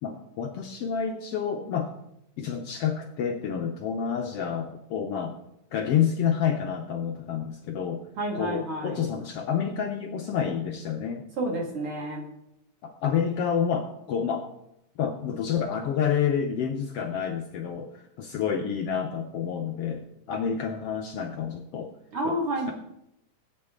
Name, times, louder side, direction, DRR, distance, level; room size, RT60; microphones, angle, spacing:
voice 1, 0.0-1.9 2.4-5.4 5.7-8.0 8.3-11.3 12.8-14.5 15.0-21.9 22.2-22.4, left 7 dB, 70° left, 3 dB, 1.6 m, -29 dB
voice 2, 8.2-9.1 11.4-12.3 22.1-22.7, right 1 dB, 50° right, -1 dB, 2.9 m, -30 dB
16.5 x 8.9 x 3.7 m, 0.83 s
omnidirectional pair, 3.3 m